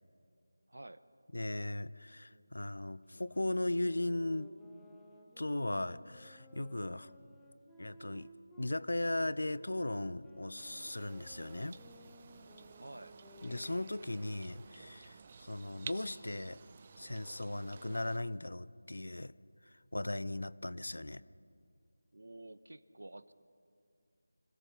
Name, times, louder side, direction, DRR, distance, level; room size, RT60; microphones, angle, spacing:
voice 1, 0.7-1.0 12.8-13.2 22.1-23.3, right 2 dB, 75° right, 15 dB, 0.9 m, -50 dB
voice 2, 1.3-4.5 5.4-7.1 7.8-8.3 8.6-11.8 13.4-16.6 17.0-19.3 19.6-21.2, left 1 dB, 75° left, 18 dB, 0.6 m, -37 dB
sound 1, 3.1-8.8 9.4-14.8, left 1 dB, 5° left, 1.2 m, -59 dB
sound 2, 10.6-18.2, right 5 dB, 30° right, 0.7 m, -53 dB
26.0 x 17.5 x 5.9 m, 2.3 s
figure-of-eight pair, 165°, 0 cm